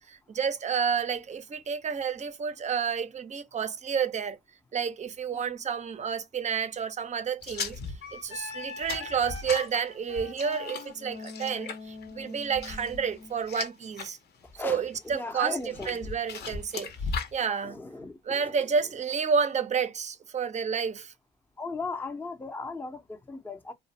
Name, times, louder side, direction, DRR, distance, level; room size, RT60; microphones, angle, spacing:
voice 1, 0.1-4.4 4.7-7.8 8.1-14.2 14.6-15.6 15.9-16.9 17.3-17.8 18.3-21.1, right 6 dB, 35° right, 0.5 m, -30 dB
sound 1, 7.4-14.1 14.5-15.0 15.5-17.4, left 5 dB, 55° left, 0.7 m, -38 dB
Wind instrument woodwind instrument, 8.0-13.4, left 5 dB, 90° left, 1.0 m, -42 dB
voice 2, 14.4-16.1 16.4-16.6 17.6-18.9 21.6-23.7, left 3 dB, 10° left, 0.5 m, -38 dB
2.4 x 2.0 x 2.7 m
cardioid pair, 90°, 20 cm